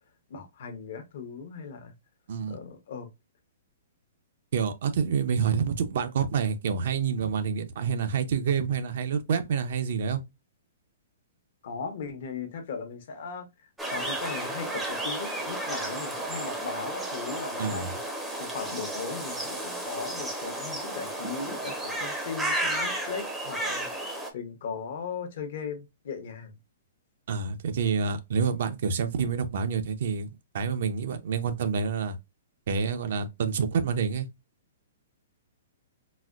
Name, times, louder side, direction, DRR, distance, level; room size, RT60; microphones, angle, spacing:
voice 1, 0.3-1.9 2.5-3.1 11.6-13.5 13.8-18.0 18.4-26.5, left 5 dB, 55° left, 0.9 m, -38 dB
voice 2, 4.5-10.2 17.6-17.9 27.3-32.2 32.7-34.3, right 6 dB, 55° right, 0.6 m, -28 dB
sound 1, 13.8-24.3, right 1 dB, 5° right, 0.6 m, -33 dB
4.1 x 2.1 x 2.4 m
hypercardioid pair, 165°, 0 cm